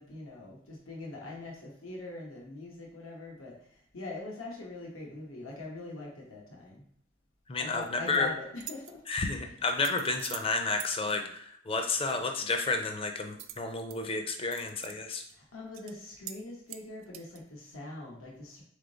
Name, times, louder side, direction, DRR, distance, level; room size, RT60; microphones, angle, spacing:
voice 1, 0.0-6.8 7.6-9.0 15.3-18.6, left 2 dB, 90° left, -1 dB, 1.0 m, -43 dB
voice 2, 7.5-8.3 9.1-15.2, left 3 dB, 25° left, 5 dB, 0.5 m, -31 dB
sound 1, 7.8-8.2 8.6-8.9 9.7-10.5 10.8-10.9 13.4-14.0 14.3-15.0 15.3-15.4 15.7-15.9 16.3-16.4 16.7-17.4, right 12 dB, 70° right, 0.3 m, -44 dB
3.7 x 3.5 x 3.9 m, 0.69 s
head